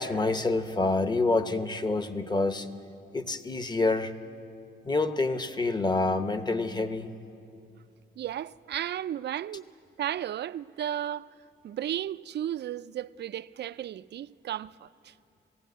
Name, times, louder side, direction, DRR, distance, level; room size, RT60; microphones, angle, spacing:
voice 1, 0.0-2.7 3.1-4.1 4.8-7.1, left 3 dB, 20° left, 0.9 m, -27 dB
voice 2, 8.2-9.6 10.0-11.3 11.6-15.1, right 11 dB, 55° right, 0.4 m, -34 dB
20.0 x 16.5 x 9.2 m
wide cardioid pair, 130°, 20 cm